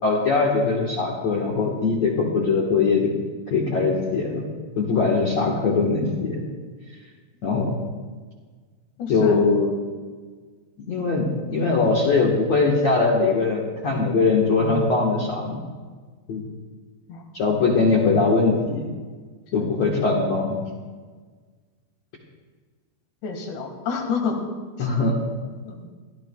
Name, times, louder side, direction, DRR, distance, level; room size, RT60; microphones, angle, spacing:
voice 1, 0.0-3.1 3.5-4.4 4.8-6.4 7.4-7.8 9.1-9.7 10.9-15.6 16.3-16.4 17.3-18.8 19.5-20.6 24.8-25.1, left 4 dB, 80° left, -3 dB, 1.5 m, -21 dB
voice 2, 9.0-9.4 17.1-17.2 19.6-19.7 23.2-24.4 24.8-24.9 25.6-25.9, left 5 dB, 65° left, 2 dB, 3.8 m, -28 dB
26.0 x 12.5 x 2.3 m, 1.5 s
omnidirectional pair, 5.6 m